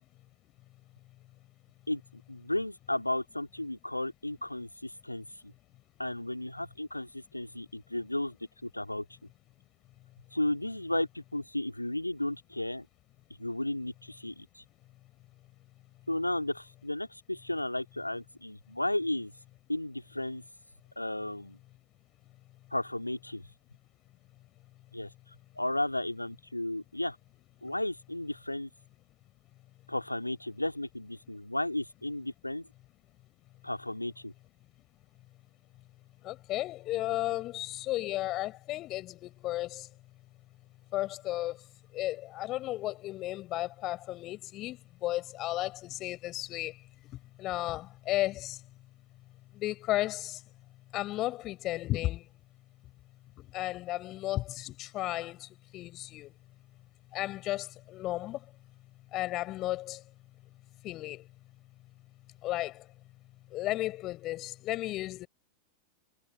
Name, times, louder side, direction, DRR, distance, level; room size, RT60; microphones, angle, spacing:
voice 1, 1.9-5.5 6.0-9.0 10.3-12.9 13.4-14.6 16.1-19.3 19.7-20.4 21.0-21.6 22.7-23.4 24.9-25.1 25.5-27.2 27.6-28.7 29.9-32.7 33.6-34.3, left 1 dB, 85° left, 2.7 m, -34 dB
voice 2, 36.2-39.9 40.9-41.6 41.9-46.8 47.4-48.6 49.6-50.4 50.9-52.2 53.5-56.3 57.1-58.4 59.1-60.0 60.8-61.2 62.4-62.8 63.5-65.3, left 16 dB, 35° left, 5.6 m, -34 dB
figure-of-eight pair, 90°, 0 cm